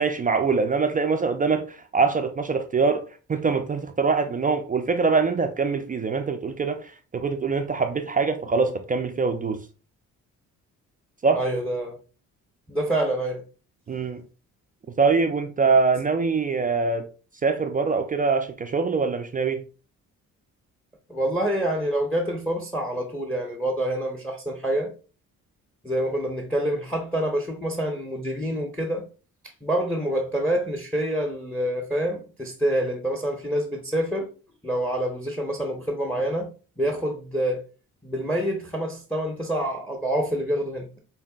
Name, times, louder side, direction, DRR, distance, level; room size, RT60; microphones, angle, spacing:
voice 1, 0.0-1.6 1.9-3.0 3.3-6.9 7.1-9.6 11.2-11.4 13.9-14.2 15.0-17.0 17.4-19.6, right 4 dB, 20° right, 0.3 m, -23 dB
voice 2, 11.3-12.0 12.7-13.4 21.1-24.9 25.8-29.1 29.6-34.3 34.6-36.5 36.8-37.6 38.0-41.0, right 1 dB, 5° left, 0.7 m, -27 dB
5.2 x 2.2 x 2.3 m
hypercardioid pair, 45°, 41 cm